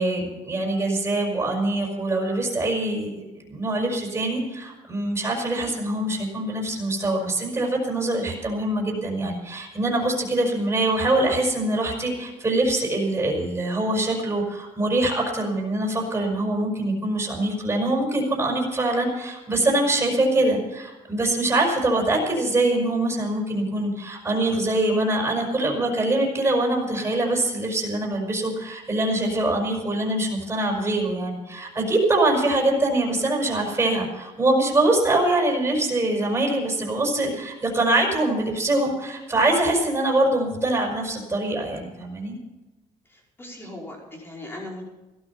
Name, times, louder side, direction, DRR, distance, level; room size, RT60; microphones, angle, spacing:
voice 1, 0.0-42.4, right 2 dB, 20° right, -1 dB, 5.3 m, -24 dB
voice 2, 43.1-44.8, left 1 dB, 15° left, -2 dB, 5.3 m, -38 dB
16.5 x 13.0 x 5.9 m, 1.1 s
cardioid pair, 130°, 14 cm